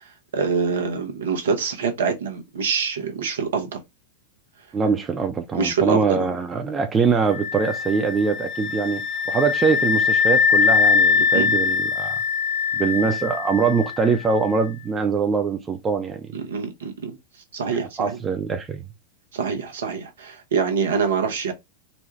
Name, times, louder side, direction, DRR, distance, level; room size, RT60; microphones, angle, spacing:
voice 1, 0.3-3.8 5.5-6.2 11.2-11.5 16.3-17.2 17.5-18.2 19.3-21.5, right 5 dB, 65° right, 0.9 m, -25 dB
voice 2, 4.7-12.2 12.7-16.3 17.7-18.8, right 5 dB, 20° right, 0.5 m, -23 dB
sound 1, 7.3-14.1, left 6 dB, 40° left, 0.8 m, -22 dB
4.1 x 2.3 x 3.0 m
figure-of-eight pair, 90°, 0 cm